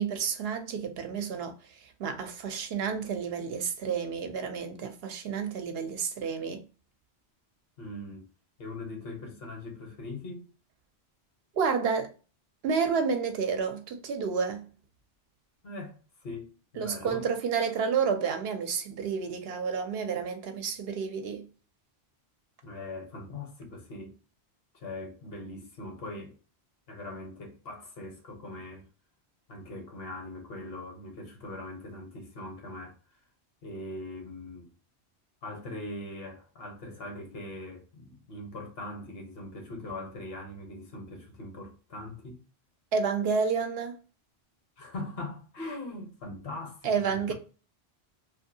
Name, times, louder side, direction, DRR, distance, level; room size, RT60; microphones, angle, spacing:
voice 1, 0.0-6.6 11.5-12.1 12.6-14.6 16.8-21.4 42.9-44.0 46.8-47.3, right 6 dB, 70° right, 0.8 m, -30 dB
voice 2, 7.8-8.3 8.6-10.5 15.6-17.3 22.6-24.1 24.7-26.4 26.9-28.8 29.5-32.9 33.6-34.7 35.4-42.4 44.8-47.3, left 2 dB, 65° left, 1.0 m, -41 dB
2.6 x 2.4 x 2.6 m
omnidirectional pair, 1.1 m